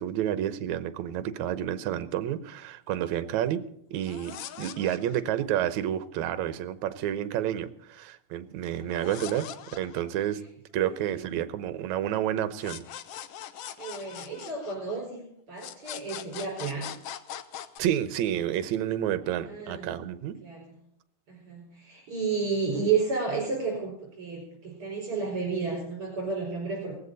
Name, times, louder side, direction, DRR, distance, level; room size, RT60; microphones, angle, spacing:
voice 1, 0.0-3.6 3.9-10.4 10.7-12.9 17.8-20.4, right 11 dB, 70° right, 13 dB, 2.1 m, -30 dB
sound 1, 4.0-5.4 8.9-10.5 12.6-15.2 15.6-17.8, left 10 dB, 75° left, 1.4 m, -41 dB
voice 2, 10.8-11.3 13.8-16.9 19.4-20.0 20.4-20.7 21.3-26.9, right 5 dB, 45° right, -2 dB, 5.7 m, -32 dB
18.5 x 15.0 x 4.0 m, 0.73 s
omnidirectional pair, 3.6 m